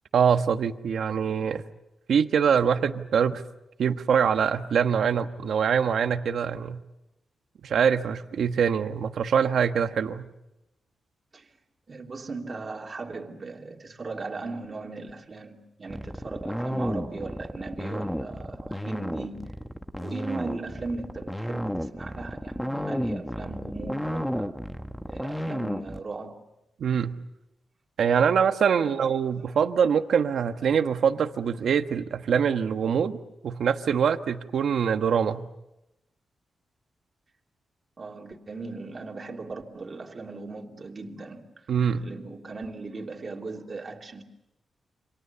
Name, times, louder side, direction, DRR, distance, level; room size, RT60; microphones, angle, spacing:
voice 1, 0.1-1.6 2.1-3.4 3.8-6.8 7.6-10.3 26.8-27.2 28.0-33.2 33.4-35.4 41.7-42.1, right 7 dB, 75° right, 1.3 m, -24 dB
voice 2, 11.9-19.4 20.0-24.6 25.1-26.4 28.7-29.6 38.0-44.2, right 3 dB, 35° right, 3.0 m, -38 dB
sound 1, 15.9-26.0, equal, 5° left, 1.0 m, -32 dB
28.5 x 26.5 x 7.0 m
wide cardioid pair, 125°, 0 cm